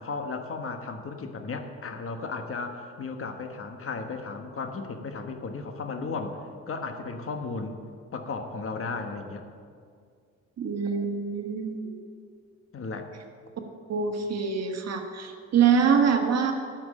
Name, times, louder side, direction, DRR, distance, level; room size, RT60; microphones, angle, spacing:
voice 1, 0.0-7.7 8.1-9.4 12.7-13.1, left 4 dB, 45° left, 6 dB, 1.3 m, -35 dB
voice 2, 10.6-11.9 13.9-16.5, right 6 dB, 55° right, 5 dB, 1.4 m, -24 dB
12.0 x 6.1 x 8.5 m, 2.1 s
cardioid pair, 90°, 30 cm